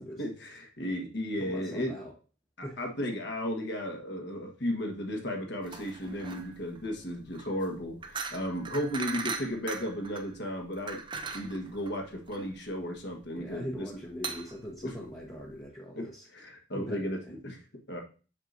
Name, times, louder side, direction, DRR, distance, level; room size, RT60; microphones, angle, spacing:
voice 1, 0.2-2.0 2.6-13.9 14.8-14.9 15.9-17.6 17.9-18.0, equal, 55° left, 2 dB, 1.4 m, -35 dB
voice 2, 1.4-2.1 2.6-2.8 13.4-16.2 16.7-17.4, equal, 15° left, -4 dB, 1.0 m, -41 dB
sound 1, 5.6-15.6, right 5 dB, 25° right, 0.5 m, -40 dB
7.3 x 6.5 x 2.6 m, 0.36 s
head